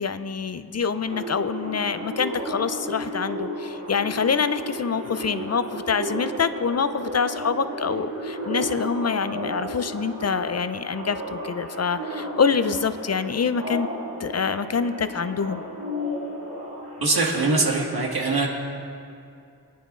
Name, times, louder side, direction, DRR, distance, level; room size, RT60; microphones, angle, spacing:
voice 1, 0.0-13.9 14.2-15.6, left 6 dB, 45° left, 12 dB, 0.4 m, -26 dB
sound 1, 1.0-17.7, equal, 50° right, 3.5 m, -33 dB
voice 2, 17.0-18.5, right 3 dB, 85° right, -1 dB, 1.9 m, -22 dB
26.5 x 10.5 x 2.5 m, 2.5 s
wide cardioid pair, 120°, 36 cm